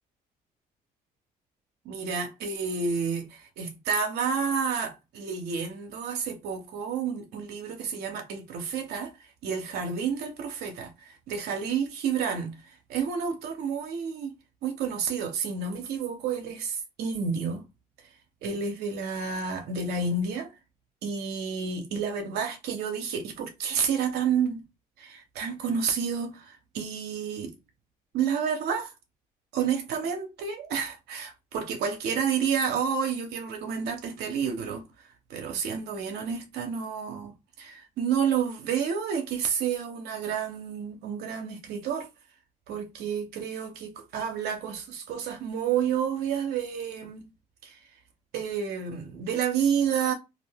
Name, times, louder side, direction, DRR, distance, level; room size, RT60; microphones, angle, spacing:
voice 1, 1.8-14.3 14.6-17.6 18.4-20.5 21.0-24.6 25.0-27.5 28.1-28.9 29.5-37.3 37.6-42.1 42.7-47.3 47.6-47.8 48.3-50.1, right 6 dB, 80° right, 0.7 m, -30 dB
2.4 x 2.1 x 3.3 m
cardioid pair, 80°, 16 cm